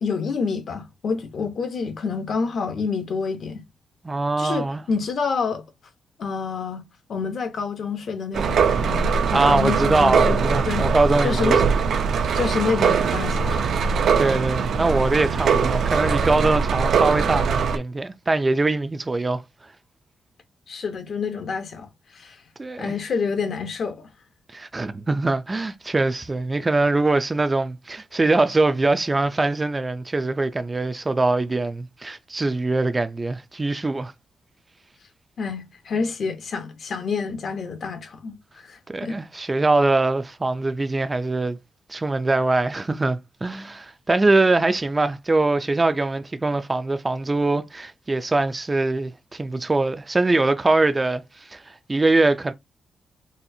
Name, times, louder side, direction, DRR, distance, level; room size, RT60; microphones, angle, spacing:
voice 1, 0.0-3.6 4.4-5.6 6.2-6.8 7.1-10.9 11.2-11.6 12.3-13.7 20.7-22.4 22.8-24.1 35.4-38.3 38.6-39.2, left 5 dB, 60° left, 0.8 m, -28 dB
voice 2, 4.0-4.8 9.3-11.6 14.2-19.4 22.6-22.9 24.5-34.1 38.9-41.6 41.9-52.5, right 2 dB, 20° right, 0.3 m, -22 dB
sound 1, 8.3-17.8, right 6 dB, 75° right, 0.5 m, -21 dB
4.2 x 2.3 x 2.6 m
wide cardioid pair, 140°, 0 cm